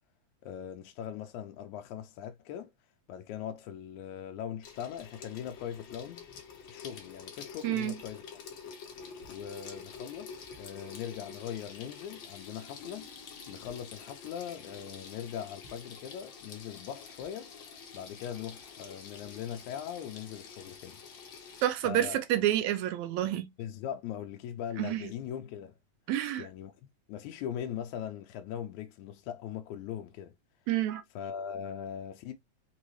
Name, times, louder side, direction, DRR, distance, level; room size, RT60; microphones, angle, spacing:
voice 1, 0.4-2.7 3.1-6.3 6.7-8.4 9.3-13.1 13.5-17.5 17.9-21.0 21.8-22.2 23.6-25.8 26.4-26.8 27.1-30.3 31.1-32.3, left 9 dB, 80° left, 1.9 m, -40 dB
Water tap faucet / Sink (filling or washing), 4.6-21.7, left 6 dB, 60° left, 1.3 m, -48 dB
voice 2, 7.6-8.0 21.6-23.5 24.8-25.0 26.1-26.5 30.7-31.0, right 12 dB, 80° right, 1.9 m, -29 dB
5.4 x 2.5 x 3.0 m
omnidirectional pair, 3.4 m